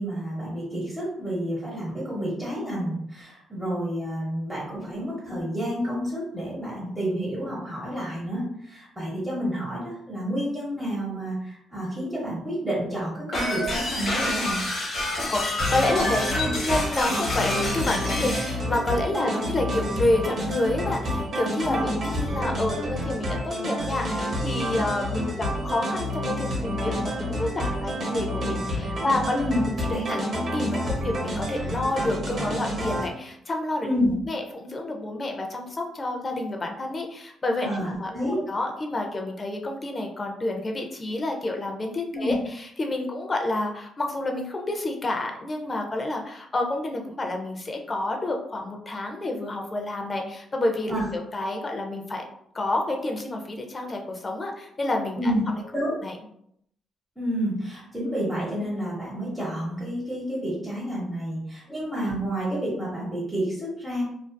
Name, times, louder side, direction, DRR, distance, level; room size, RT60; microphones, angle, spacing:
voice 1, 0.0-14.6 19.1-19.2 21.6-21.9 29.3-29.6 29.9-30.0 33.8-34.1 37.6-38.4 42.1-42.3 50.9-51.0 55.2-55.4 55.7-56.0 57.2-64.0, equal, ahead, -7 dB, 1.0 m, -29 dB
sound 1, 13.3-18.5, left 1 dB, 50° left, 1.0 m, -28 dB
voice 2, 15.3-29.4 29.9-33.9 34.3-52.2 52.5-55.3 56.0-56.2 61.7-61.8, left 2 dB, 30° left, 2 dB, 0.5 m, -29 dB
sound 2, 15.6-33.1, equal, 55° right, 0.7 m, -29 dB
2.5 x 2.3 x 2.2 m, 0.72 s
cardioid pair, 90°, 0 cm